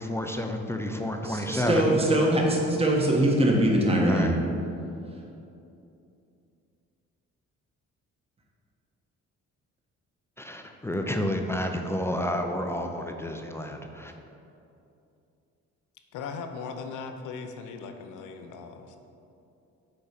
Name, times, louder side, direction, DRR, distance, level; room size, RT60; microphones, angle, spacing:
voice 1, 0.0-1.8 4.0-4.4 10.4-14.1, left 1 dB, 10° left, 4 dB, 0.6 m, -30 dB
voice 2, 1.2-4.3, right 1 dB, 20° right, -1 dB, 1.2 m, -22 dB
voice 3, 16.1-18.9, left 5 dB, 85° left, 6 dB, 0.7 m, -38 dB
6.5 x 4.4 x 5.8 m, 2.7 s
cardioid pair, 90°, 30 cm